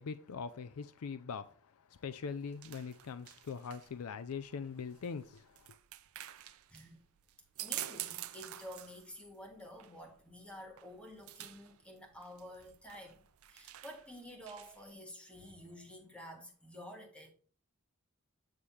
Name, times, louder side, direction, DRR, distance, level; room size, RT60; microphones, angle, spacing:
voice 1, 0.0-1.4 2.0-5.7, left 5 dB, 80° left, 0.5 m, -42 dB
sound 1, 2.0-14.9, right 13 dB, 65° right, 0.5 m, -49 dB
voice 2, 7.6-13.2 13.5-17.3, equal, 5° left, 1.4 m, -50 dB
8.7 x 3.2 x 5.5 m
head